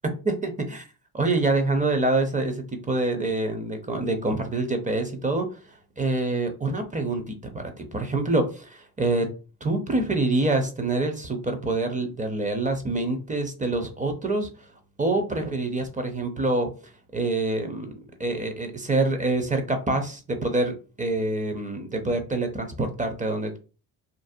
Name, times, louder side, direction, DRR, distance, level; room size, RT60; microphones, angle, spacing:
voice 1, 0.2-0.9 1.1-5.5 6.0-9.3 9.6-14.5 15.0-16.7 17.1-17.9 18.2-23.6, right 2 dB, 20° right, 5 dB, 0.5 m, -26 dB
2.6 x 2.1 x 2.5 m, 0.34 s
supercardioid pair, 75°, 44 cm